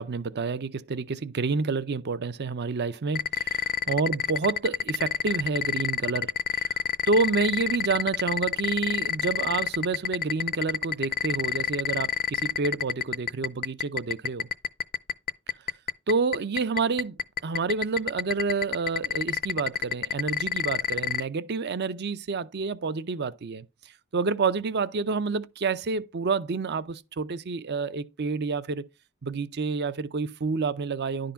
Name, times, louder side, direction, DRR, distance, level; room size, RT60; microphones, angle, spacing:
voice 1, 0.0-6.7 7.1-14.5 16.1-17.2 17.4-23.6 24.1-28.9 29.2-31.3, right 4 dB, 50° right, 0.6 m, -29 dB
sound 1, 3.2-21.2, left 7 dB, 40° left, 0.5 m, -26 dB
11.0 x 3.8 x 5.7 m
head